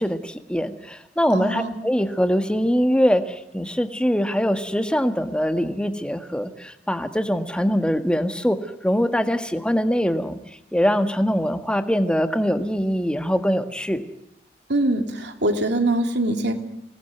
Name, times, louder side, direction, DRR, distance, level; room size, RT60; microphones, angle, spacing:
voice 1, 0.0-8.6 8.8-10.4 10.7-14.0, equal, 5° left, 7 dB, 1.8 m, -23 dB
voice 2, 1.3-1.7 14.7-16.5, right 1 dB, 70° right, 5 dB, 3.2 m, -23 dB
26.5 x 19.0 x 9.5 m, 0.80 s
head